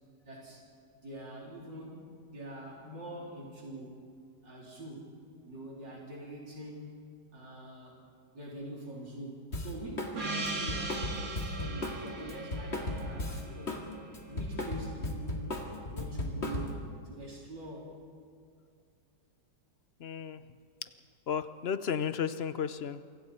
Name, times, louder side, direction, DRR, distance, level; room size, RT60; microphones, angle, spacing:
voice 1, 0.2-0.7 1.0-4.0 4.4-5.2 5.4-7.0 7.3-8.0 8.3-13.9 14.3-15.5 15.9-18.0, right 1 dB, 85° right, -3 dB, 4.4 m, -44 dB
Drum kit, 9.5-10.2 10.4-13.8 14.1-16.9, left 2 dB, 40° left, 2.4 m, -36 dB
Gong, 10.2-14.9, right 3 dB, 55° right, 2.4 m, -40 dB
voice 2, 20.0-20.4 21.3-23.0, left 7 dB, 55° left, 12 dB, 0.7 m, -33 dB
27.5 x 25.0 x 4.3 m, 2.3 s
omnidirectional pair, 1.9 m